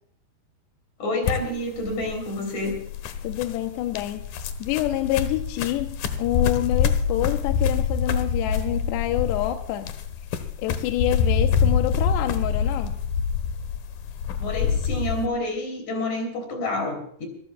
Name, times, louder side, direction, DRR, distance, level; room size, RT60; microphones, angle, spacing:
voice 1, 1.0-2.8 14.4-17.3, left 2 dB, 45° left, 5 dB, 4.5 m, -28 dB
sound 1, 1.2-15.3, left 6 dB, 65° left, 2.5 m, -26 dB
voice 2, 3.2-9.9 10.6-13.0, left 14 dB, 80° left, 5 dB, 2.9 m, -27 dB
26.0 x 15.0 x 2.3 m, 0.65 s
omnidirectional pair, 5.0 m